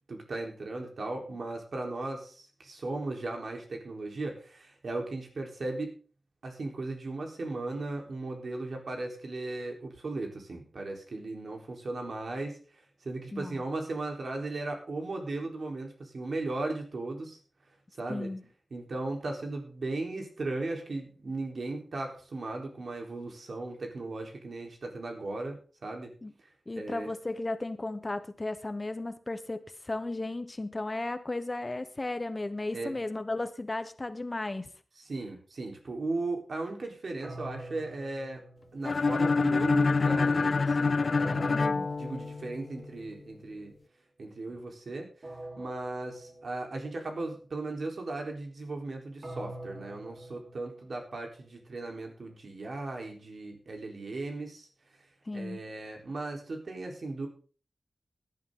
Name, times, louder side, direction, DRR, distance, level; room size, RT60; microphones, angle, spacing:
voice 1, 0.1-6.0 6.4-17.4 18.0-18.3 18.7-26.1 26.8-27.1 32.7-33.0 35.0-38.4 38.7-41.5 42.0-43.7 44.2-45.1 45.6-54.7 55.3-57.3, right 2 dB, 70° right, 2 dB, 4.0 m, -37 dB
voice 2, 13.3-13.6 18.1-18.4 26.2-26.3 26.7-34.7 41.5-41.9 55.3-55.6, left 2 dB, 30° left, 11 dB, 1.1 m, -35 dB
sound 1, 37.2-39.3 41.2-43.1 45.2-47.1 49.2-51.4, right 1 dB, 50° right, 3.9 m, -45 dB
sound 2, 38.8-42.7, left 4 dB, 55° left, 0.5 m, -26 dB
17.0 x 11.0 x 3.9 m, 0.39 s
wide cardioid pair, 95°, 0 cm